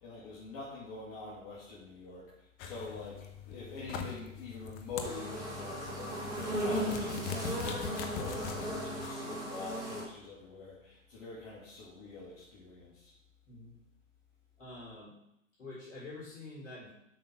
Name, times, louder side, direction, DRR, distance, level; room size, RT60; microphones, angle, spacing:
voice 1, 0.0-2.3 2.6-13.1, left 3 dB, 40° left, -6 dB, 2.5 m, -45 dB
sound 1, 2.6-9.1, left 6 dB, 25° left, 0.9 m, -42 dB
sound 2, 5.0-10.0, right 1 dB, 10° right, 2.8 m, -37 dB
voice 2, 14.6-15.1 15.6-16.9, left 2 dB, 65° left, -6 dB, 4.1 m, -46 dB
7.9 x 6.0 x 6.1 m, 0.82 s
figure-of-eight pair, 115°, 39 cm